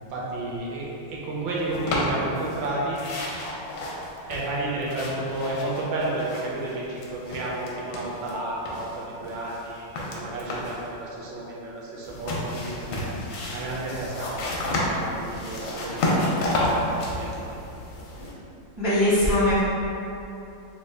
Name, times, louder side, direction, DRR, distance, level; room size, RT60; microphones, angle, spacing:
voice 1, 0.0-3.0 4.3-13.1 13.5-17.3, right 2 dB, 75° right, -4 dB, 1.3 m, -32 dB
sound 1, 1.7-2.7 2.9-6.7 6.9-8.3 8.7-10.9 12.0-18.3, left 1 dB, 80° left, 1.3 m, -30 dB
voice 2, 18.8-19.6, left 1 dB, 30° right, -14 dB, 0.5 m, -20 dB
3.9 x 2.2 x 3.2 m, 2.9 s
omnidirectional pair, 2.1 m